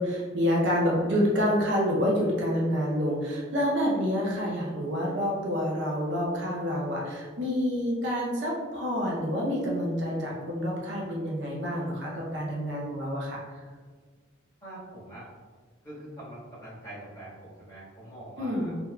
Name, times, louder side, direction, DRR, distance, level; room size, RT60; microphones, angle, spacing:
voice 1, 0.0-13.4 18.4-18.8, equal, 60° right, -3 dB, 0.6 m, -28 dB
voice 2, 14.6-15.3 15.8-18.7, right 1 dB, 20° left, -11 dB, 1.4 m, -44 dB
3.7 x 2.9 x 2.2 m, 1.5 s
head